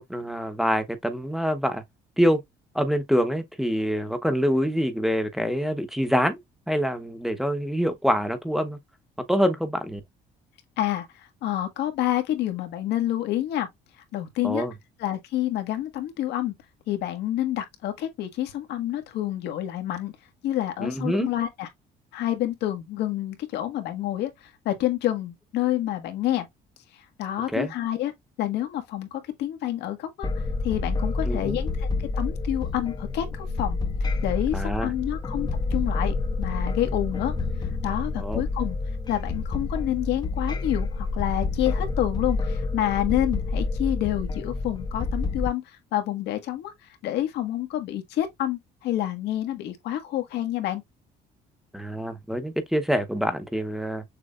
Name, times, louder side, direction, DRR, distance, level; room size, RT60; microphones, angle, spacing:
voice 1, 0.0-1.8 2.2-2.4 2.7-6.4 6.7-8.8 9.3-10.0 14.4-14.7 20.8-21.3 27.5-27.7 31.3-31.6 34.5-34.9 38.2-38.4 51.7-54.0, equal, ahead, 1.0 m, -25 dB
voice 2, 10.8-13.7 14.1-14.6 15.0-16.5 16.9-20.1 20.4-21.7 22.1-24.3 24.6-26.5 27.2-28.1 28.4-30.3 30.6-31.9 32.2-37.3 37.6-38.8 39.1-46.7 47.0-50.8, left 13 dB, 80° left, 1.6 m, -28 dB
sound 1, 30.2-45.5, left 3 dB, 25° left, 0.8 m, -28 dB
6.7 x 3.1 x 2.5 m
cardioid pair, 110°, 17 cm